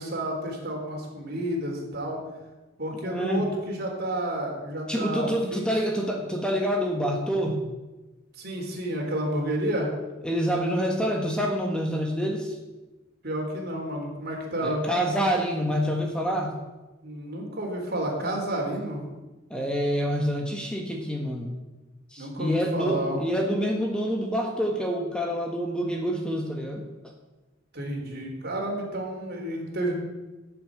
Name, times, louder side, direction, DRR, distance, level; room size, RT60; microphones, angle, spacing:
voice 1, 0.0-2.2 2.8-5.6 8.3-9.9 13.2-14.8 17.0-19.0 22.2-23.2 27.7-29.9, right 1 dB, 55° right, 0 dB, 3.9 m, -30 dB
voice 2, 3.0-3.5 4.9-7.6 10.2-12.5 14.6-16.5 19.5-21.5 22.1-26.9, equal, 5° left, 1 dB, 1.5 m, -27 dB
14.0 x 7.4 x 8.8 m, 1.1 s
head